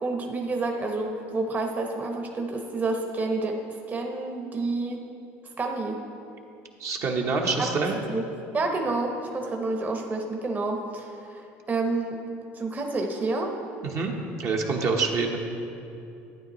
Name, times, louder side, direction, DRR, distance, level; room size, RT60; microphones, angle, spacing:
voice 1, 0.0-3.6 3.9-5.0 5.6-6.0 7.6-7.7 8.1-8.2 8.5-12.2 12.5-13.5, right 3 dB, 25° right, 2 dB, 0.9 m, -29 dB
voice 2, 6.8-8.0 13.9-15.4, right 4 dB, 55° right, 1 dB, 1.1 m, -26 dB
11.5 x 9.2 x 3.1 m, 2.7 s
supercardioid pair, 95°, 6 cm